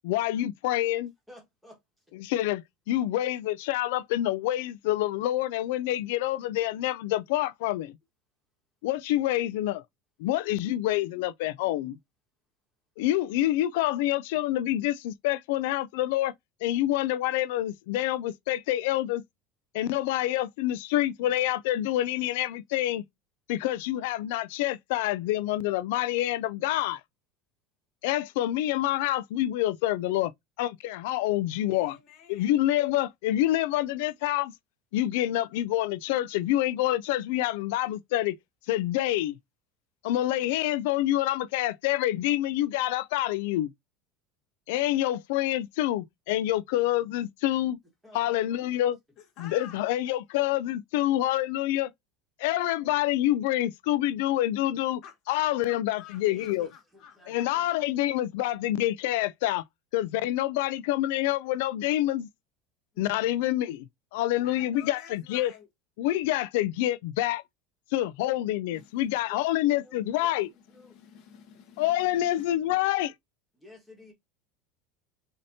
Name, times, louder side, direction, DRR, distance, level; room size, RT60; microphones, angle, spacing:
voice 1, 0.0-1.1 2.1-8.0 8.8-9.8 10.2-12.0 13.0-16.3 16.6-19.2 19.7-23.0 23.5-27.0 28.0-30.3 30.6-32.0 32.3-34.5 34.9-38.4 38.7-39.4 40.0-43.7 44.7-47.8 48.1-49.0 49.4-51.9 52.4-55.0 55.3-56.7 57.3-59.6 59.9-62.3 63.0-63.9 64.1-65.5 66.0-67.4 67.9-70.5 71.8-73.1, left 14 dB, 65° left, 0.4 m, -27 dB
voice 2, 1.3-1.8 48.0-48.2 56.2-57.7 69.3-70.9 73.5-74.1, left 2 dB, ahead, 1.5 m, -53 dB
voice 3, 31.6-32.5 49.2-49.9 55.0-57.5 62.9-63.2 64.3-65.7 68.7-69.0 70.6-72.5, left 8 dB, 35° left, 1.3 m, -51 dB
6.4 x 2.8 x 2.7 m
cardioid pair, 180°, 0 cm